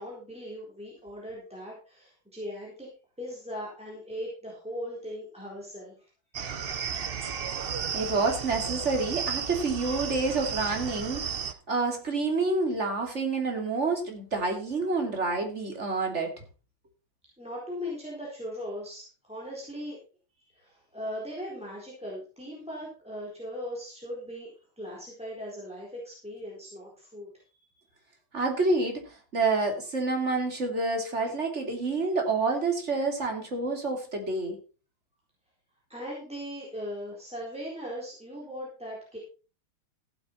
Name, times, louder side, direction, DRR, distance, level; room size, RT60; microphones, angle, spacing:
voice 1, 0.0-2.9 3.2-6.1 17.4-20.0 20.4-27.8 35.9-39.2, equal, 5° right, -3 dB, 3.9 m, -39 dB
sound 1, 6.3-11.5, right 6 dB, 90° right, 0.5 m, -34 dB
voice 2, 7.9-16.3 28.3-34.6, right 3 dB, 30° right, 3 dB, 3.3 m, -28 dB
15.0 x 8.5 x 4.5 m, 0.35 s
omnidirectional pair, 2.4 m